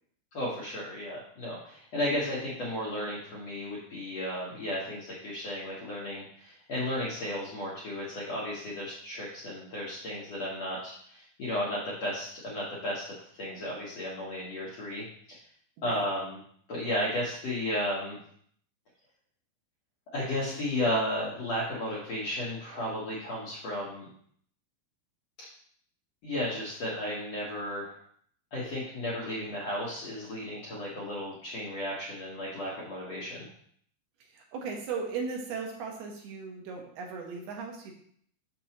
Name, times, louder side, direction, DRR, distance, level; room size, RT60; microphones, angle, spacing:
voice 1, 0.3-15.4 15.8-16.4 16.7-18.2 20.1-24.1 26.2-27.9 28.5-33.4, left 1 dB, 65° left, -6 dB, 1.6 m, -34 dB
voice 2, 34.3-37.9, right 5 dB, 75° right, 1 dB, 3.0 m, -37 dB
6.9 x 6.8 x 2.9 m, 0.63 s
omnidirectional pair, 4.6 m